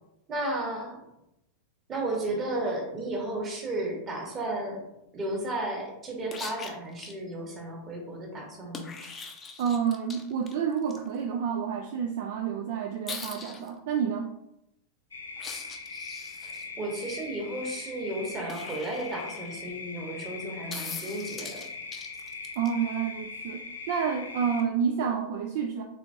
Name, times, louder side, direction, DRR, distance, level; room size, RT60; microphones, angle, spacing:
voice 1, 0.3-1.0 1.9-4.8 5.1-9.1 16.4-21.6, right 1 dB, 25° right, 0 dB, 1.2 m, -33 dB
sound 1, 6.3-7.1 8.7-11.0 13.1-13.7 15.4-16.6 18.5-19.6 20.7-22.7 24.6-24.7, left 5 dB, 20° left, 0.5 m, -41 dB
voice 2, 9.6-14.3 22.6-23.6 23.9-25.8, right 7 dB, 50° right, 3 dB, 0.3 m, -29 dB
sound 2, 15.1-24.6, left 4 dB, 75° left, 0.5 m, -41 dB
4.3 x 3.3 x 2.6 m, 0.85 s
figure-of-eight pair, 90°, 0 cm